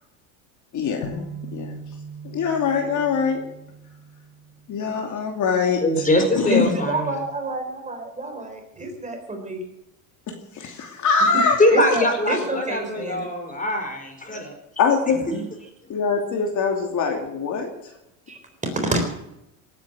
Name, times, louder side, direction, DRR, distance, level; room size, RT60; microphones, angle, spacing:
voice 1, 0.7-1.3 1.5-1.8 2.2-3.4 4.7-6.0 6.4-6.8 10.3-11.6 14.8-15.2 15.9-17.9, left 5 dB, 45° left, 3 dB, 2.8 m, -23 dB
sound 1, 1.0-5.0, right 2 dB, 75° left, 3.7 m, -39 dB
voice 2, 5.8-7.2 11.6-14.5, left 1 dB, 20° left, 5 dB, 4.9 m, -22 dB
voice 3, 6.9-9.7 11.2-11.4 11.7-13.3 15.3-15.4 18.3-19.3, right 2 dB, 15° right, 4 dB, 3.8 m, -28 dB
18.5 x 9.2 x 7.8 m, 0.85 s
supercardioid pair, 105°, 43 cm